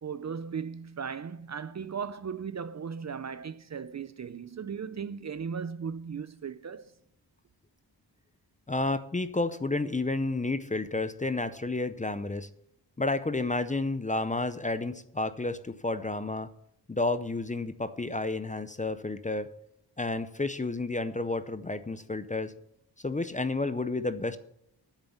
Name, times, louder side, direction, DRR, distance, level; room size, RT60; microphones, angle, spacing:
voice 1, 0.0-6.9, right 6 dB, 40° right, 0.5 m, -37 dB
voice 2, 8.7-12.5 13.0-16.5 16.9-19.5 20.0-22.5 23.0-24.4, left 2 dB, 20° left, 0.5 m, -31 dB
10.0 x 8.1 x 7.2 m
wide cardioid pair, 140°, 42 cm